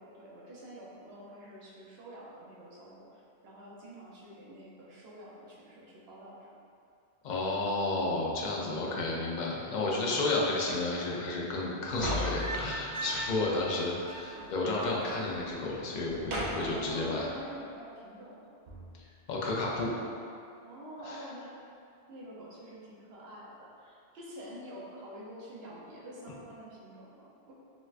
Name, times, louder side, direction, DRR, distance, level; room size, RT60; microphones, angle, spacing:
voice 1, 0.0-6.5 9.6-9.8 16.6-18.5 20.6-21.5 22.1-27.5, right 1 dB, 75° right, -6 dB, 0.9 m, -47 dB
voice 2, 7.2-17.3 19.3-20.2 21.1-21.2, left 2 dB, 55° left, -3 dB, 0.6 m, -32 dB
sound 1, 11.8-13.4 13.7-13.8 14.0-15.0 15.3-15.7 16.0-17.4 18.7-19.0, equal, 55° right, 0.6 m, -37 dB
4.0 x 2.2 x 2.4 m, 2.4 s
omnidirectional pair, 1.0 m